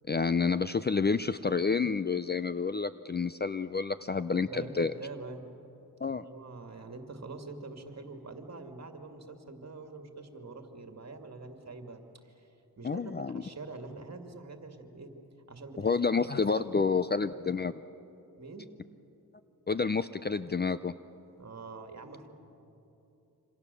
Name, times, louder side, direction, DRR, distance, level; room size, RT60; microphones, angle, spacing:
voice 1, 0.1-4.9 6.0-6.2 12.8-13.4 15.8-17.8 19.7-20.9, left 5 dB, 25° left, 13 dB, 0.5 m, -29 dB
voice 2, 4.3-5.5 6.1-12.5 12.8-15.2 15.5-15.9 16.3-16.9 18.4-18.7 21.4-22.3, right 3 dB, 45° right, 5 dB, 2.4 m, -45 dB
27.5 x 26.0 x 6.9 m, 2.9 s
wide cardioid pair, 95°, 38 cm